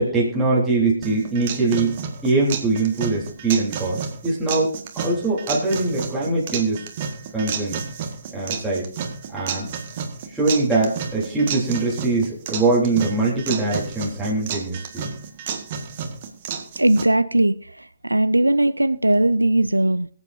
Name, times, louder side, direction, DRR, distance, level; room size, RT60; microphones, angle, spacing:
voice 1, 0.0-6.8 7.3-7.8 8.3-8.9 9.3-9.7 10.3-15.1, right 3 dB, 5° right, -8 dB, 3.4 m, -22 dB
sound 1, 1.0-17.0, right 6 dB, 40° right, 1.7 m, -31 dB
voice 2, 16.8-20.1, right 1 dB, 85° right, 14 dB, 0.5 m, -19 dB
23.5 x 8.1 x 2.7 m, 0.41 s
figure-of-eight pair, 130°, 0 cm